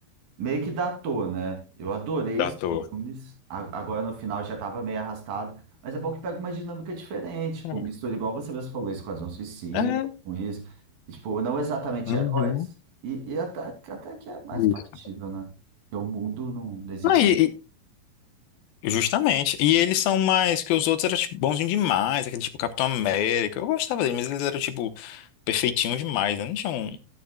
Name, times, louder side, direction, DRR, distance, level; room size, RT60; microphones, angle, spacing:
voice 1, 0.4-2.5 2.9-9.9 10.3-10.7 11.1-12.5 13.0-14.7 15.0-15.5 15.9-17.4, right 4 dB, 65° right, 4.4 m, -32 dB
voice 2, 2.4-2.8 7.6-7.8 9.7-10.1 12.1-12.7 14.5-14.7 17.0-17.5 18.8-27.0, left 11 dB, 80° left, 2.7 m, -24 dB
13.0 x 11.5 x 2.2 m
omnidirectional pair, 4.3 m